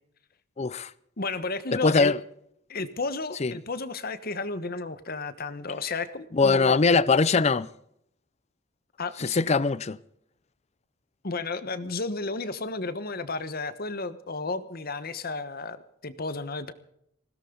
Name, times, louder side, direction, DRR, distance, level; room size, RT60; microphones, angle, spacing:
voice 1, 0.6-0.9 1.7-2.2 3.4-3.5 6.3-7.7 9.2-10.0, left 4 dB, 35° left, 0.5 m, -22 dB
voice 2, 1.2-2.1 2.7-6.8 9.0-9.4 11.2-15.8 16.0-16.7, left 3 dB, 50° left, 1.2 m, -32 dB
20.5 x 16.5 x 3.9 m
head